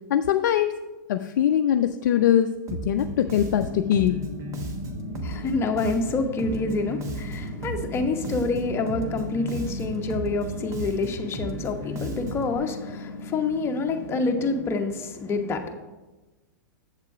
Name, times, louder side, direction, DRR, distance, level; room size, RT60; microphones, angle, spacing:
voice 1, 0.1-0.8 1.1-2.5 2.8-4.2, left 10 dB, 65° left, 7 dB, 0.4 m, -22 dB
Bass guitar, 2.7-12.6, right 1 dB, 30° right, 1.0 m, -35 dB
sound 1, 2.9-14.5, left 2 dB, 10° right, 2.1 m, -38 dB
voice 2, 5.2-15.7, left 3 dB, 25° left, 4 dB, 1.0 m, -27 dB
7.5 x 7.3 x 4.9 m, 1.2 s
hypercardioid pair, 110°, 10 cm